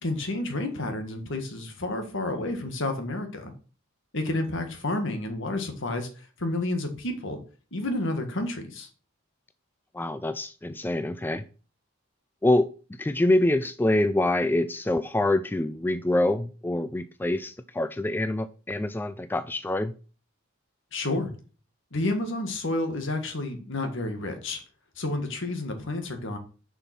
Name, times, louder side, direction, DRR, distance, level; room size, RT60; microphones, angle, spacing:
voice 1, 0.0-3.5 4.1-7.4 7.7-8.9 20.9-21.3 21.9-24.6 25.0-26.4, left 2 dB, 60° left, 6 dB, 1.7 m, -30 dB
voice 2, 9.9-11.4 12.4-12.7 13.0-19.9, left 1 dB, 10° left, 11 dB, 0.3 m, -25 dB
7.0 x 5.6 x 6.0 m, 0.38 s
head